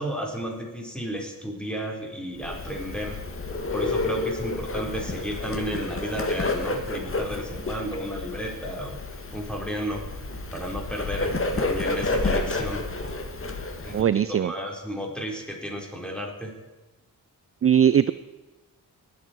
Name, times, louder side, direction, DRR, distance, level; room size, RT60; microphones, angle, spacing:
voice 1, 0.0-3.2 3.7-10.0 10.5-12.8 13.8-16.5, equal, ahead, 0 dB, 4.3 m, -33 dB
Bird, 2.4-14.0, left 2 dB, 35° left, 1.8 m, -30 dB
voice 2, 13.9-14.5 17.6-18.1, right 9 dB, 35° right, 15 dB, 0.5 m, -19 dB
20.0 x 8.3 x 4.6 m, 1.1 s
cardioid pair, 60°, 39 cm